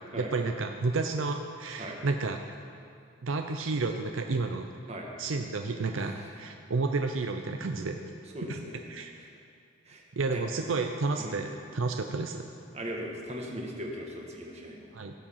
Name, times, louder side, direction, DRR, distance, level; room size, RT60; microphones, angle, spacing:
voice 1, 0.2-2.4 3.2-4.7 5.2-8.0 8.5-8.6 8.9-9.1 10.2-12.4 14.9-15.1, right 3 dB, 75° right, 5 dB, 0.6 m, -31 dB
voice 2, 8.3-8.8 9.2-9.3 9.9-10.4 11.2-11.4 12.7-14.9, equal, 30° right, -1 dB, 1.7 m, -39 dB
17.0 x 7.5 x 5.6 m, 2.4 s
head